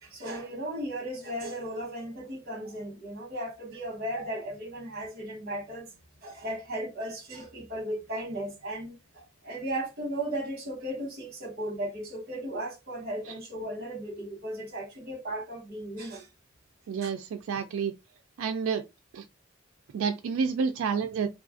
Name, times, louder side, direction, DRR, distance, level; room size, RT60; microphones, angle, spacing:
voice 1, 0.0-5.9 6.2-16.3 17.0-17.1, right 1 dB, 50° right, 1.1 m, -36 dB
voice 2, 16.9-17.9 18.4-18.8 19.1-19.2 19.9-21.3, right 6 dB, 90° right, 0.3 m, -29 dB
3.1 x 2.3 x 2.4 m
head